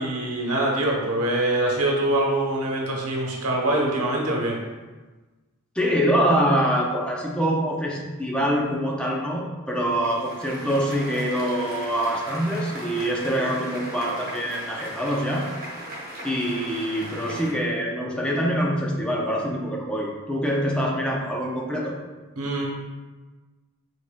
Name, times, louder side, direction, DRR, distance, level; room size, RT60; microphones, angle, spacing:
voice 1, 0.0-4.6 22.4-22.6, right 1 dB, 80° right, -1 dB, 1.0 m, -24 dB
voice 2, 5.8-15.5 16.2-22.0, equal, 5° left, -2 dB, 0.5 m, -25 dB
sound 1, 9.8-17.5, right 1 dB, 45° right, 1.2 m, -38 dB
5.2 x 4.0 x 2.2 m, 1.2 s
head